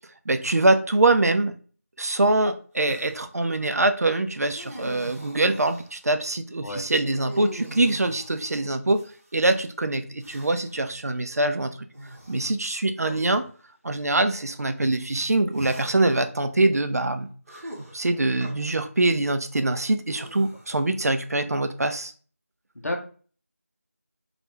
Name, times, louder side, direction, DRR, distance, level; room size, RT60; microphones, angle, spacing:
voice 1, 0.3-1.5 2.0-9.0 9.3-11.9 12.3-13.5 13.8-17.3 17.9-22.1, right 2 dB, 85° right, 8 dB, 0.4 m, -24 dB
sound 1, 2.8-3.2 4.4-6.0 7.1-9.4 10.2-10.8 11.9-12.4 13.3-13.4 15.5-16.2 17.5-18.5 20.1-20.9, right 1 dB, 70° right, 0.9 m, -43 dB
voice 2, 13.0-13.4 22.8-23.0, left 1 dB, 80° left, 3 dB, 0.6 m, -32 dB
2.4 x 2.1 x 3.0 m, 0.41 s
figure-of-eight pair, 180°, 8 cm